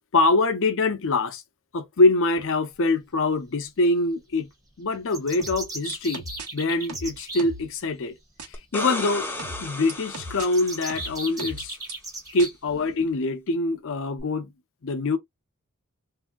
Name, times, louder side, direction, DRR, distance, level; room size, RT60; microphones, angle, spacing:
voice 1, 0.1-1.4 1.7-4.5 4.8-6.2 6.5-8.1 8.7-9.3 9.6-11.8 12.3-14.5 14.8-15.2, left 2 dB, 60° left, 0.6 m, -24 dB
sound 1, 5.1-7.5 10.4-12.5, right 2 dB, 15° right, 0.9 m, -36 dB
sound 2, 5.4-6.5 6.9-7.7 8.4-8.5 9.4-10.5 10.9-11.9 12.4-12.5, right 2 dB, 80° right, 1.1 m, -38 dB
sound 3, 8.5-11.4 14.2-14.3, left 2 dB, 10° left, 0.6 m, -34 dB
3.3 x 2.6 x 2.2 m
head